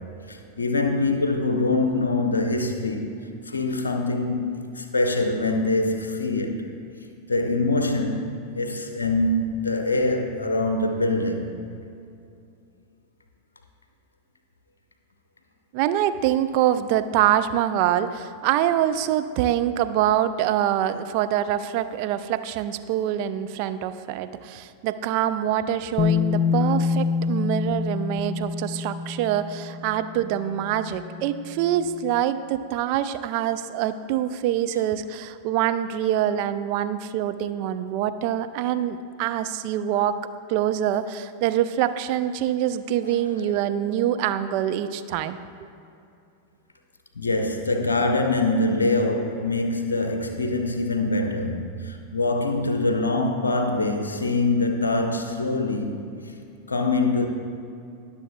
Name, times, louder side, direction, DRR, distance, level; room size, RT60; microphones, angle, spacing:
voice 1, 0.3-3.1 3.5-4.5 4.7-6.7 7.3-11.5 43.0-43.6 47.2-56.0 56.7-57.3, left 2 dB, 75° left, 5 dB, 0.6 m, -24 dB
voice 2, 15.7-40.2 40.5-45.4, right 11 dB, 45° right, 11 dB, 0.4 m, -25 dB
Bass guitar, 26.0-32.0, left 6 dB, 35° left, 0.5 m, -27 dB
20.5 x 7.0 x 2.3 m, 2.6 s
figure-of-eight pair, 90°, 0 cm